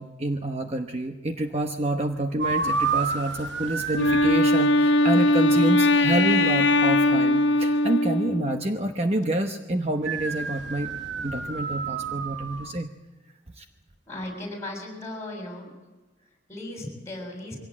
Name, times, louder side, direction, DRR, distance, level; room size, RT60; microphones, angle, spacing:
voice 1, 0.0-10.9 11.2-12.9 13.6-13.7, right 1 dB, 35° right, 4 dB, 1.0 m, -27 dB
sound 1, 2.4-4.4 10.0-12.7, right 4 dB, 80° right, 1.2 m, -29 dB
Wind instrument woodwind instrument, 3.9-8.6, left 1 dB, 85° left, 0.9 m, -20 dB
voice 2, 14.1-15.7 16.2-17.6, left 1 dB, 15° left, 2 dB, 6.7 m, -37 dB
23.5 x 17.5 x 8.7 m, 1.2 s
head